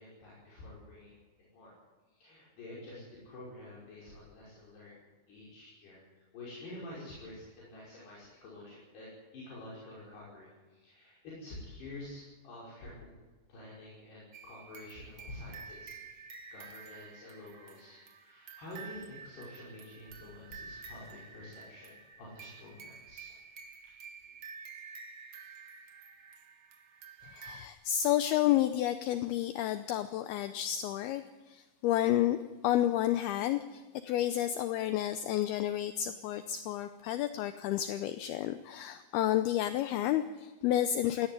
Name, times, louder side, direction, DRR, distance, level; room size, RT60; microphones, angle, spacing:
voice 1, 0.0-1.7 2.1-13.1 13.5-16.0 16.5-23.3 23.8-23.9, left 1 dB, 60° left, -6 dB, 7.5 m, -49 dB
sound 1, 14.3-27.7, right 5 dB, 90° right, 1.2 m, -50 dB
voice 2, 27.2-32.4 32.6-41.3, left 12 dB, 80° left, 10 dB, 2.3 m, -31 dB
19.0 x 17.0 x 9.7 m, 1.3 s
omnidirectional pair, 5.3 m